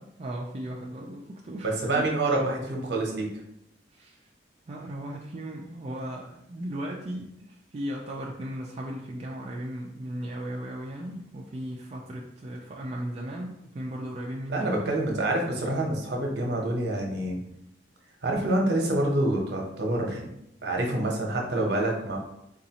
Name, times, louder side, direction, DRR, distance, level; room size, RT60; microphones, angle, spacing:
voice 1, 0.2-2.0 3.9-4.2 4.7-14.8, right 1 dB, 35° right, -2 dB, 0.4 m, -36 dB
voice 2, 1.6-3.3 14.5-17.4 18.2-20.3 20.6-22.2, right 1 dB, 65° right, 0 dB, 0.8 m, -27 dB
3.9 x 2.6 x 2.8 m, 0.81 s
head